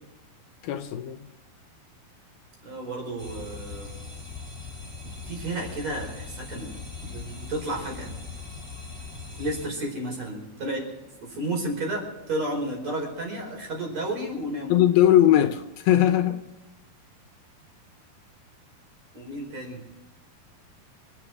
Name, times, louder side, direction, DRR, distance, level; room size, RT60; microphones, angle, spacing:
voice 1, 0.6-1.2 14.7-16.4, left 12 dB, 75° left, 2.6 m, -20 dB
voice 2, 2.6-3.9 5.3-6.7 7.0-8.1 9.4-10.8 11.2-14.8 19.1-19.8, right 1 dB, 45° right, 5.9 m, -32 dB
sound 1, 3.2-9.7, left 4 dB, 5° right, 4.4 m, -40 dB
27.5 x 9.2 x 4.8 m
omnidirectional pair, 4.6 m